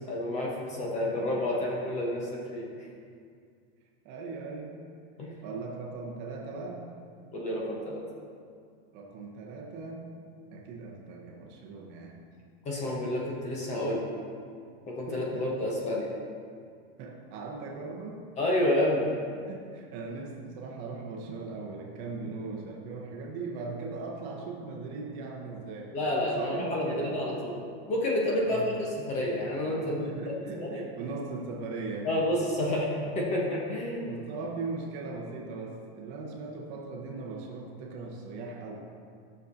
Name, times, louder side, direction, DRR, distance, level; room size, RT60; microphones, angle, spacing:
voice 1, 0.1-2.6 5.2-5.3 7.3-8.0 12.6-14.0 14.9-16.1 18.4-19.1 25.9-27.5 27.9-28.6 29.1-30.0 30.4-30.9 32.0-34.1, left 1 dB, 20° left, -3 dB, 1.0 m, -29 dB
voice 2, 4.0-4.8 5.4-6.8 8.9-10.0 10.5-12.2 15.1-15.5 17.0-18.2 19.5-26.0 26.4-27.2 28.4-28.9 29.8-32.3 34.1-38.8, right 3 dB, 40° right, -1 dB, 1.0 m, -39 dB
11.5 x 6.5 x 2.7 m, 2.2 s
supercardioid pair, 165°, 31 cm